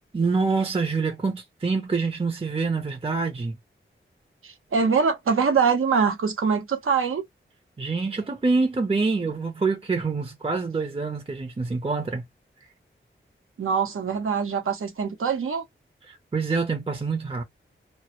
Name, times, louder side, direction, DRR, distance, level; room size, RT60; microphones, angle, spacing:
voice 1, 0.1-3.6 7.8-12.2 16.1-17.4, right 4 dB, 25° right, 0.6 m, -26 dB
voice 2, 4.4-7.2 13.6-15.6, right 5 dB, 80° right, 0.8 m, -23 dB
2.1 x 2.0 x 2.8 m
cardioid pair, 45°, 21 cm